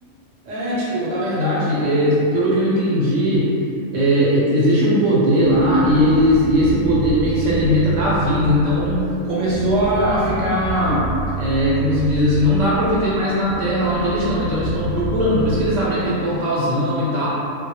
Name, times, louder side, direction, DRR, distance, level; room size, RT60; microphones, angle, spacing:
voice 1, 0.5-3.5 3.9-11.1 11.4-17.3, equal, 80° right, -7 dB, 0.9 m, -19 dB
sound 1, 5.4-15.7, right 3 dB, 65° left, 0.8 m, -29 dB
2.1 x 2.1 x 2.8 m, 2.7 s
omnidirectional pair, 1.3 m